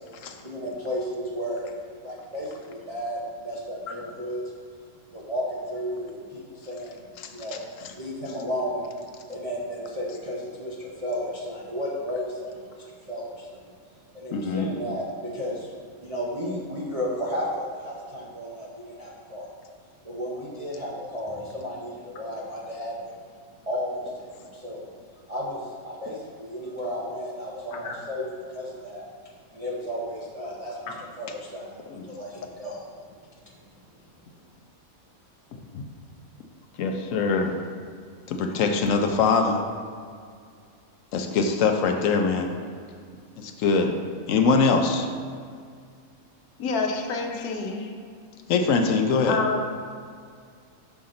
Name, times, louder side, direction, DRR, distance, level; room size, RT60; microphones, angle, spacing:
voice 1, 0.4-1.8 2.0-4.4 5.1-7.6 7.9-8.9 9.3-13.6 14.1-15.7 16.0-19.5 20.0-23.1 23.7-24.9 25.3-29.0 29.5-32.8, equal, 30° right, -7 dB, 0.7 m, -33 dB
voice 2, 14.3-14.7 31.9-32.1 35.7-35.8 36.8-37.5 38.3-39.7 41.1-42.5 43.4-43.9 44.3-45.1 46.9-47.1 47.4-47.5 47.8-47.9 48.5-49.4, left 4 dB, 70° left, 4 dB, 0.9 m, -23 dB
voice 3, 46.6-47.8 49.3-49.6, left 4 dB, 90° left, 2 dB, 1.3 m, -28 dB
5.9 x 5.6 x 3.8 m, 2.2 s
omnidirectional pair, 1.5 m